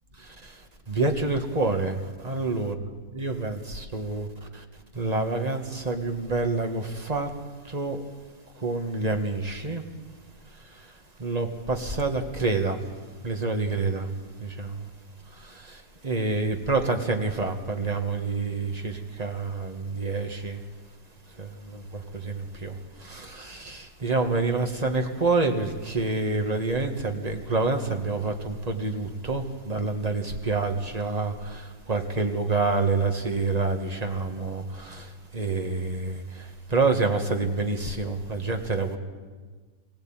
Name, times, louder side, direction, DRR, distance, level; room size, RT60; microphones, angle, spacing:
voice 1, 0.2-0.5 0.9-2.7 3.1-4.6 4.9-7.3 7.7-8.0 8.6-9.8 11.2-12.8 13.2-14.1 14.4-14.8 15.4-20.6 21.4-22.7 23.0-39.0, right 3 dB, 25° right, 4 dB, 1.7 m, -28 dB
23.0 x 16.5 x 9.0 m, 1.4 s
omnidirectional pair, 1.8 m